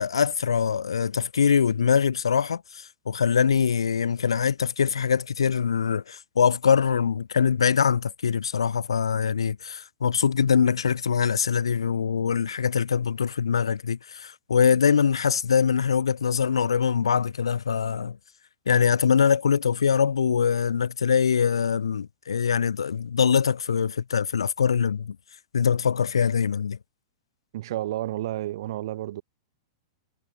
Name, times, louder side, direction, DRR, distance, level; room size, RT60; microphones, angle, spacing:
voice 1, 0.0-18.2 18.7-25.2 25.5-26.8, left 7 dB, 80° left, 2.4 m, -23 dB
voice 2, 27.5-29.2, right 14 dB, 60° right, 2.6 m, -31 dB
hypercardioid pair, 110°, 3 cm